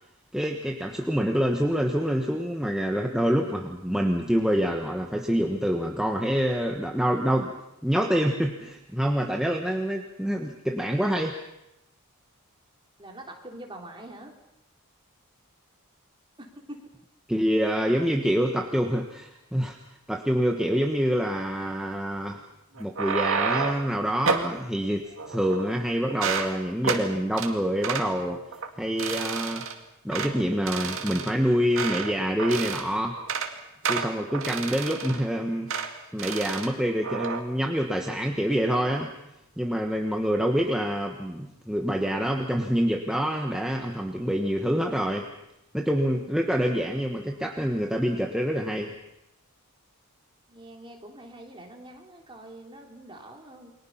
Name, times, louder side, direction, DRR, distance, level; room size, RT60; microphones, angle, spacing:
voice 1, 0.3-7.5 7.8-11.4 17.3-19.8 20.1-22.4 22.8-28.4 28.8-29.7 30.0-33.2 33.9-35.7 36.1-39.1 39.6-45.3 45.7-48.9, equal, 5° right, 1 dB, 1.4 m, -26 dB
voice 2, 13.0-14.3 16.4-16.8 50.5-53.7, right 1 dB, 25° right, 1 dB, 3.4 m, -44 dB
sound 1, 22.8-23.9 24.3-24.5 25.2-25.8 26.1-26.5 26.8-27.1 27.4-27.5 27.8-28.1 28.5-28.7 29.0-29.7 30.1-30.3 30.7-32.1 32.4-32.9 33.2-33.5 33.8-35.3 35.7-35.9 36.2-36.7 37.0-37.4, right 5 dB, 60° right, 2.2 m, -30 dB
29.5 x 22.5 x 5.8 m, 0.88 s
head